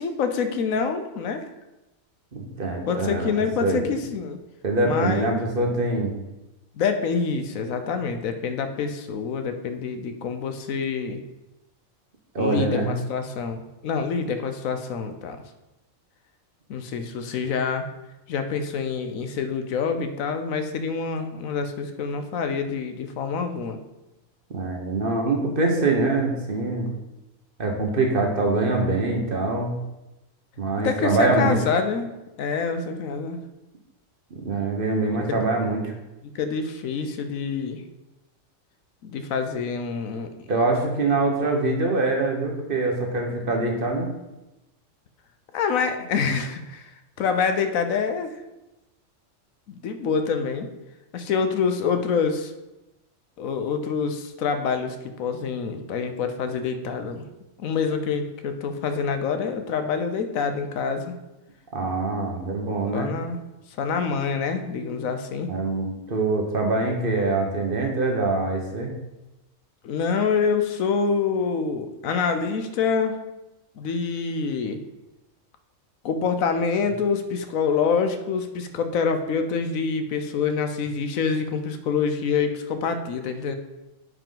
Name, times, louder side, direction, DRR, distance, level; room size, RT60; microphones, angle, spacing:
voice 1, 0.0-1.5 2.9-4.4 4.8-5.4 6.8-11.2 12.4-15.4 16.7-17.8 18.3-23.8 30.8-32.1 32.4-33.4 35.3-35.4 36.3-37.8 39.0-40.3 45.5-46.9 47.2-48.3 49.7-50.7 51.1-52.5 53.4-57.3 57.6-61.2 62.9-63.4 63.8-65.5 69.8-73.2 73.8-74.8 76.0-83.5, left 5 dB, 90° left, 8 dB, 1.2 m, -26 dB
voice 2, 2.3-3.4 3.6-3.9 4.6-6.1 12.3-12.9 24.5-26.9 27.6-29.7 30.6-31.6 34.3-35.9 40.5-44.1 61.7-63.1 65.5-68.9, right 2 dB, 45° right, 1 dB, 1.3 m, -24 dB
9.3 x 5.0 x 3.9 m, 0.98 s
omnidirectional pair, 1.4 m